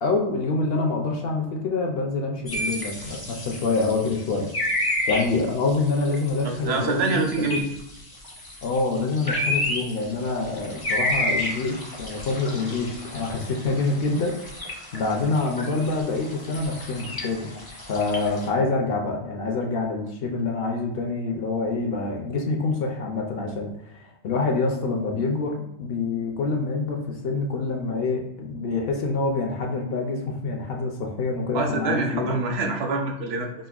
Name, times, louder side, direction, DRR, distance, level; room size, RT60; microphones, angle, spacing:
voice 1, 0.0-4.5 5.1-7.7 8.6-14.3 14.9-17.5 17.9-32.3, left 3 dB, 65° left, 1 dB, 0.7 m, -26 dB
sound 1, 2.5-18.5, left 1 dB, 25° left, 0.5 m, -31 dB
voice 2, 6.4-7.6 31.5-33.7, right 3 dB, 70° right, 2 dB, 0.8 m, -26 dB
5.1 x 2.1 x 2.3 m, 0.83 s
omnidirectional pair, 1.2 m